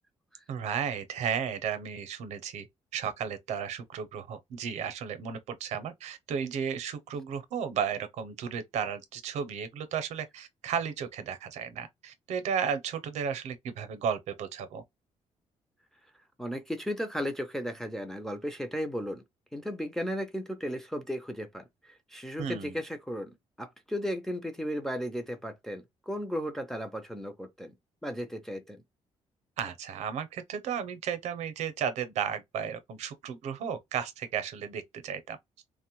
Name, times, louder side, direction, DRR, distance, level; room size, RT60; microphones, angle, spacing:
voice 1, 0.5-2.7 2.9-14.8 22.4-22.8 29.6-35.4, right 7 dB, 70° right, 0.6 m, -34 dB
voice 2, 16.4-19.2 19.5-27.7 28.0-28.8, equal, 5° left, 0.3 m, -35 dB
2.9 x 2.1 x 2.9 m
cardioid pair, 180°, 12 cm